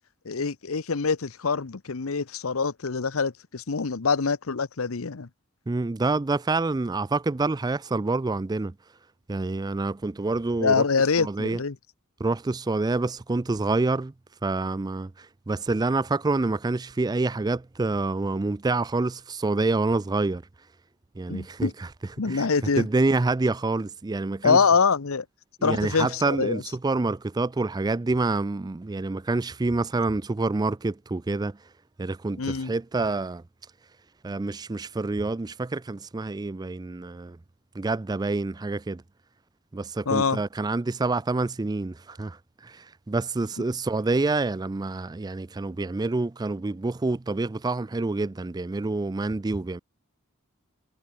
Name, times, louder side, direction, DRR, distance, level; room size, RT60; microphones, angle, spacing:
voice 1, 0.2-5.3 10.6-11.8 21.3-21.7 22.2-22.9 24.4-25.2 25.6-26.6 32.4-32.7 40.1-40.4, left 5 dB, 75° left, 0.9 m, -25 dB
voice 2, 5.7-8.7 9.3-10.8 11.2-11.6 12.2-14.1 14.4-20.4 21.2-21.9 22.3-22.5 22.8-24.6 25.6-31.5 32.0-33.4 34.2-37.4 37.8-39.0 39.7-42.4 42.6-49.8, right 3 dB, 20° right, 0.4 m, -27 dB
head